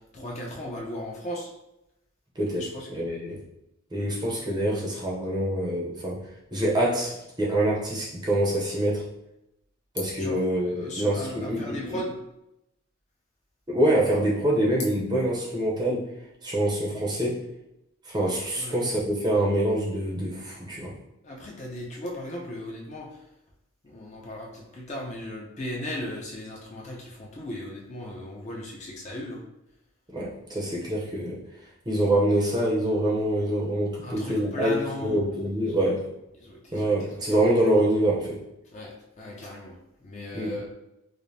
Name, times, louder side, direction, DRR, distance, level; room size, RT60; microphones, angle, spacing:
voice 1, 0.1-1.5 2.7-2.9 10.2-12.2 18.6-18.8 21.2-23.1 23.8-29.4 34.0-35.2 35.7-35.8 36.4-37.0 37.4-37.5 38.7-39.7 40.0-40.7, left 1 dB, 35° left, -3 dB, 0.6 m, -37 dB
voice 2, 2.4-3.4 3.9-6.2 6.5-9.1 9.9-12.0 13.7-16.1 16.4-17.4 18.1-20.9 30.1-31.4 31.9-36.1 36.7-38.4 40.3-40.5, right 1 dB, 20° right, -4 dB, 0.6 m, -25 dB
5.0 x 2.1 x 2.7 m, 0.87 s
head